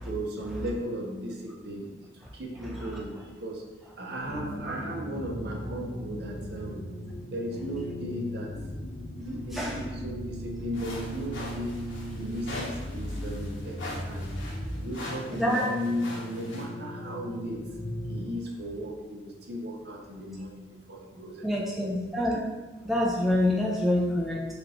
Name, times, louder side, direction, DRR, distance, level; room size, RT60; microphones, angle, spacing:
voice 1, 0.1-1.9 2.3-3.7 4.0-6.8 7.3-8.5 9.1-11.8 12.1-14.3 14.8-17.6 18.1-21.8, equal, 55° right, 0 dB, 0.6 m, -36 dB
sound 1, 4.2-18.3, equal, 50° left, 0.6 m, -38 dB
sound 2, 10.7-16.6, left 1 dB, 80° left, 0.9 m, -42 dB
voice 2, 15.3-15.7 21.4-22.4 22.8-24.5, left 1 dB, ahead, -4 dB, 0.3 m, -26 dB
3.3 x 2.9 x 3.8 m, 1.2 s
head